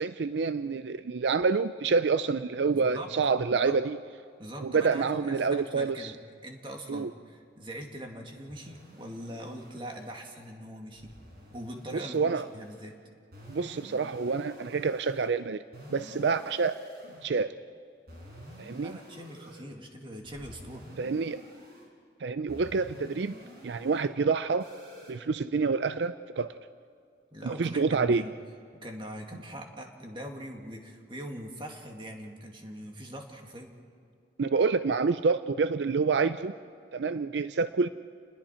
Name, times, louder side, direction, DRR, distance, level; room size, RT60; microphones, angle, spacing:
voice 1, 0.0-4.0 4.6-6.1 6.9-7.1 11.9-12.5 13.5-15.6 15.9-16.8 17.2-17.5 18.6-18.9 21.0-21.4 22.2-23.3 23.6-24.7 25.1-26.5 27.4-28.2 34.4-36.5 36.9-37.9, right 4 dB, 80° right, 12 dB, 0.5 m, -27 dB
voice 2, 2.7-3.1 3.5-3.8 4.4-6.2 6.4-11.1 11.5-13.0 18.8-20.9 27.3-28.4 28.8-33.8, equal, 30° right, 2 dB, 2.3 m, -42 dB
sound 1, 8.5-10.5 11.0-12.9 13.3-15.3 15.7-17.3 18.1-19.6 20.2-21.9 22.5-24.1 24.6-25.1, equal, 60° right, 5.0 m, -49 dB
30.0 x 20.5 x 4.4 m, 2.4 s
head